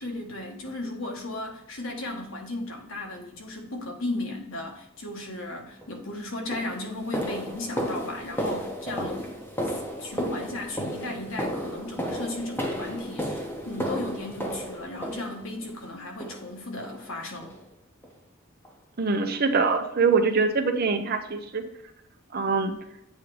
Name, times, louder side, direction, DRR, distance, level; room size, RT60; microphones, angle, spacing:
voice 1, 0.0-9.3 9.6-17.5, left 2 dB, 70° left, 1 dB, 1.4 m, -35 dB
sound 1, 5.8-6.0 6.5-15.7 16.2-16.6 16.8-17.0 17.4-17.6 18.0-18.1 18.6-18.7, equal, 10° left, 0.9 m, -33 dB
voice 2, 19.0-21.6 22.3-22.7, right 4 dB, 45° right, 6 dB, 0.7 m, -24 dB
8.2 x 3.7 x 3.3 m, 0.85 s
head